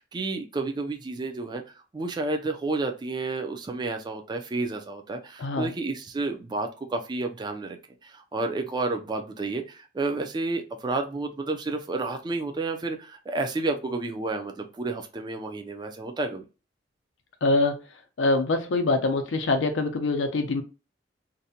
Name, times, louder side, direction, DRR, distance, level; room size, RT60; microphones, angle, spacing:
voice 1, 0.0-1.6 1.9-7.8 8.0-16.4, right 3 dB, 25° right, 5 dB, 0.3 m, -31 dB
voice 2, 5.4-5.7 17.4-17.8 18.2-20.6, left 2 dB, 80° left, 5 dB, 0.5 m, -24 dB
2.6 x 2.1 x 2.7 m, 0.31 s
head